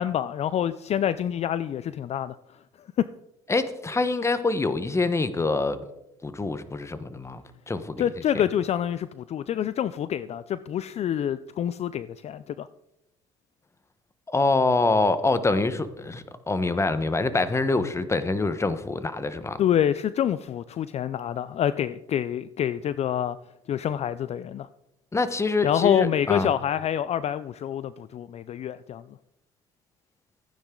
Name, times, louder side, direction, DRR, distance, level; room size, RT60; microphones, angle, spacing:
voice 1, 0.0-2.6 3.0-3.1 8.0-12.7 19.6-23.4 23.7-24.7 25.6-29.0, left 10 dB, 50° left, 0.5 m, -27 dB
voice 2, 3.5-5.8 6.2-8.0 14.3-19.6 25.1-26.5, left 3 dB, 20° left, 1.2 m, -25 dB
14.5 x 9.8 x 3.8 m
supercardioid pair, 85°, 14 cm